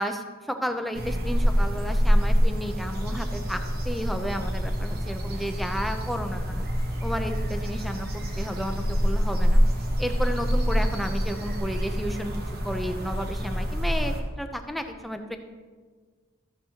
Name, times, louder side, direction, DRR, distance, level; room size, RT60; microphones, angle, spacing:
voice 1, 0.0-6.6 7.0-8.1 8.4-9.6 10.0-12.3 12.6-15.4, equal, ahead, 5 dB, 0.5 m, -32 dB
sound 1, 0.9-14.2, equal, 50° right, 1.1 m, -26 dB
13.5 x 7.9 x 2.9 m, 1.5 s
head